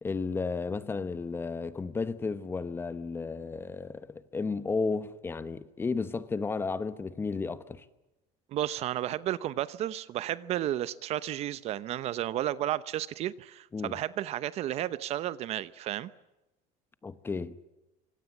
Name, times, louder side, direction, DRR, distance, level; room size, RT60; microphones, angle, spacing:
voice 1, 0.0-7.8 13.7-14.0 17.0-17.6, left 4 dB, 15° left, 1.0 m, -33 dB
voice 2, 8.5-16.1, right 13 dB, 40° right, 0.9 m, -32 dB
25.5 x 25.5 x 7.4 m
cardioid pair, 170°, 16 cm